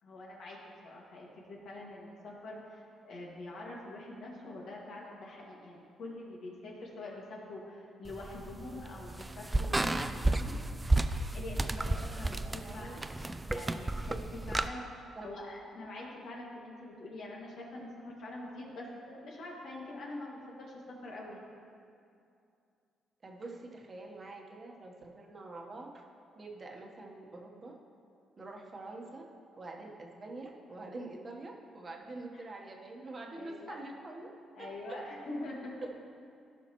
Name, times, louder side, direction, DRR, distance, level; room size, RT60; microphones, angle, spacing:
voice 1, 0.0-0.6 0.8-10.5 11.3-21.4 32.3-32.5 33.4-33.8 34.6-35.8, left 2 dB, 70° left, -3 dB, 2.0 m, -45 dB
sound 1, 8.1-14.7, right 2 dB, 15° right, 0.4 m, -32 dB
voice 2, 12.5-13.0 15.1-15.3 23.2-26.0 26.4-27.7 28.4-29.2 29.6-34.3 34.6-34.7, right 2 dB, 35° right, 0 dB, 1.2 m, -46 dB
15.5 x 5.7 x 3.1 m, 2.5 s
cardioid pair, 90°, 0 cm